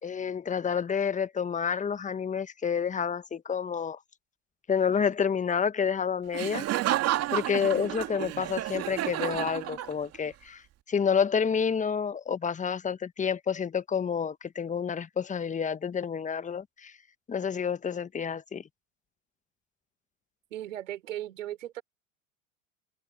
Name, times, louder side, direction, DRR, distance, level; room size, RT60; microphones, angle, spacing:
voice 1, 0.0-4.0 4.7-6.6 7.3-10.6 10.9-16.9 17.3-18.6, left 6 dB, 20° left, 1.4 m, -29 dB
Laughter, 6.3-10.3, right 14 dB, 40° right, 2.3 m, -30 dB
voice 2, 20.5-21.8, right 13 dB, 75° right, 4.5 m, -37 dB
open air
hypercardioid pair, 85°, 39 cm